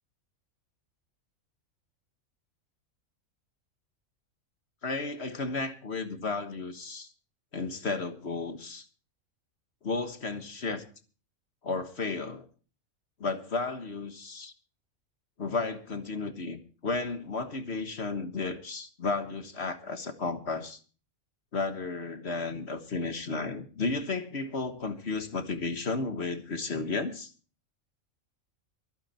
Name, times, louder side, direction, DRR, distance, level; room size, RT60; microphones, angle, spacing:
voice 1, 4.8-7.1 7.5-8.9 9.8-10.8 11.6-12.4 13.2-14.5 15.4-20.8 21.5-27.3, left 3 dB, 50° left, 1.6 m, -33 dB
24.0 x 9.1 x 4.3 m
omnidirectional pair, 1.4 m